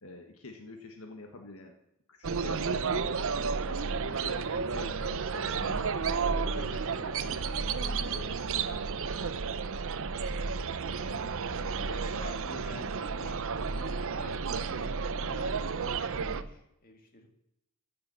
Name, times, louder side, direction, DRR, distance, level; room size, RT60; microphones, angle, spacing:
voice 1, 0.0-1.8 2.1-3.3 3.6-5.9 6.3-8.9 16.2-16.5, left 2 dB, 70° left, 4 dB, 1.5 m, -46 dB
sound 1, 2.2-16.4, right 5 dB, 65° right, 0.7 m, -32 dB
voice 2, 11.0-13.4 13.7-17.3, left 1 dB, 40° left, 3 dB, 2.3 m, -48 dB
15.0 x 6.9 x 7.0 m, 0.86 s
head